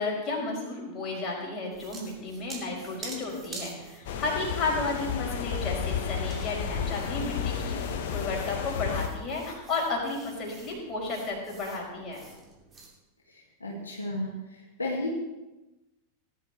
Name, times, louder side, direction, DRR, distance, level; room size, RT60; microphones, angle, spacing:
voice 1, 0.0-7.8 8.1-12.2, left 3 dB, 25° left, -3 dB, 4.7 m, -33 dB
sound 1, 1.7-12.9, right 3 dB, 20° right, 2.8 m, -48 dB
sound 2, 4.0-9.1, left 7 dB, 55° left, 1.1 m, -32 dB
voice 2, 13.6-14.3 14.8-15.1, left 2 dB, 75° left, -3 dB, 2.4 m, -31 dB
18.5 x 10.5 x 3.3 m, 1.0 s
figure-of-eight pair, 90°, 0 cm